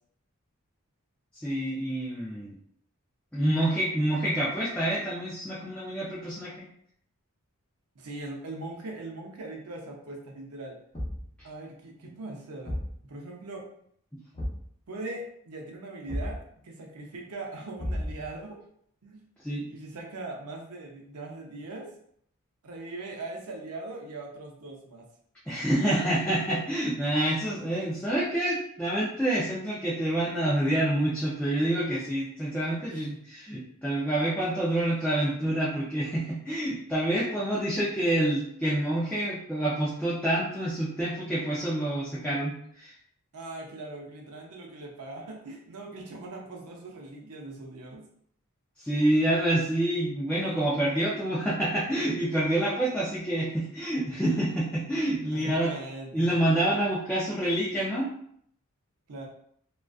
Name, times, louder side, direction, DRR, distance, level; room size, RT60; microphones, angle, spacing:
voice 1, 1.3-2.5 3.3-6.7 11.4-11.5 19.4-19.6 25.5-42.9 48.8-55.7 56.1-58.1, right 1 dB, 5° left, -8 dB, 0.4 m, -27 dB
voice 2, 8.0-10.8 11.4-13.7 14.9-18.6 19.0-19.2 19.7-21.9 22.6-25.1 32.9-33.1 43.3-48.1 55.3-56.4 59.1-59.3, right 2 dB, 90° right, 1 dB, 0.6 m, -40 dB
Thump thud, 10.9-11.4 12.6-13.0 14.3-14.7 16.1-16.4 17.8-18.4, equal, 20° left, 0.7 m, -33 dB
2.4 x 2.2 x 2.3 m, 0.66 s
head